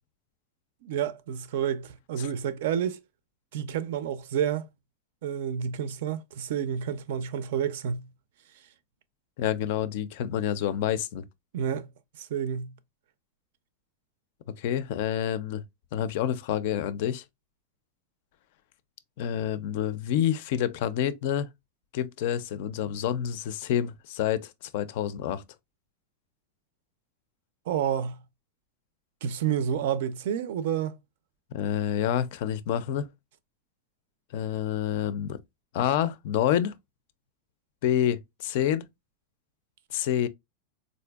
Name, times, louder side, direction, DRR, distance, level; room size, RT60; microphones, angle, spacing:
voice 1, 0.8-3.0 3.5-4.7 5.2-8.1 11.5-11.9 12.2-12.7 27.7-28.2 29.2-31.0, right 8 dB, 65° right, 0.4 m, -29 dB
voice 2, 9.4-11.2 14.6-15.6 15.9-17.2 19.2-21.5 21.9-25.4 31.5-33.1 34.3-35.4 35.7-36.8 37.8-38.9 39.9-40.3, left 10 dB, 55° left, 0.4 m, -28 dB
4.1 x 2.5 x 2.2 m
supercardioid pair, 165°, 0 cm